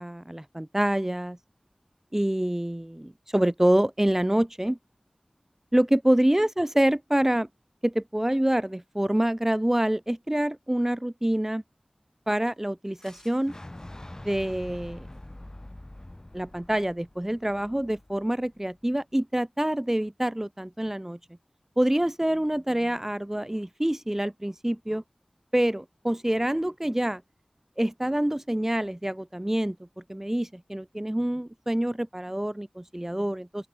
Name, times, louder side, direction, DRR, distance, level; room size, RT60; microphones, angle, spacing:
voice 1, 0.0-1.4 2.1-4.8 5.7-7.5 7.8-11.6 12.3-13.5 14.2-15.1 16.3-21.2 21.8-25.0 25.5-27.2 27.8-29.8 30.1-33.7, right 1 dB, 15° right, 1.9 m, -26 dB
Boom, 13.0-18.9, left 1 dB, 30° left, 6.3 m, -45 dB
open air
wide cardioid pair, 55°, 2 cm